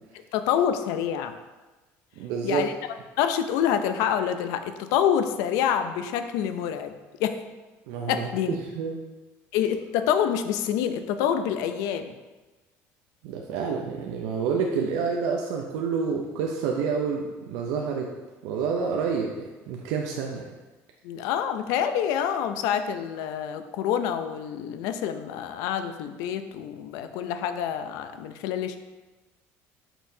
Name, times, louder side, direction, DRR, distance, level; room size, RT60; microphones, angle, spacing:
voice 1, 0.3-1.3 2.4-2.7 3.2-6.9 7.2-7.4 8.1-8.6 9.5-12.1 21.0-28.8, left 9 dB, 80° left, 9 dB, 0.5 m, -27 dB
voice 2, 2.2-2.6 7.9-9.0 13.2-18.1 18.4-20.5, right 5 dB, 85° right, 0 dB, 0.6 m, -28 dB
6.6 x 5.8 x 2.7 m, 1.2 s
cardioid pair, 160°, 6 cm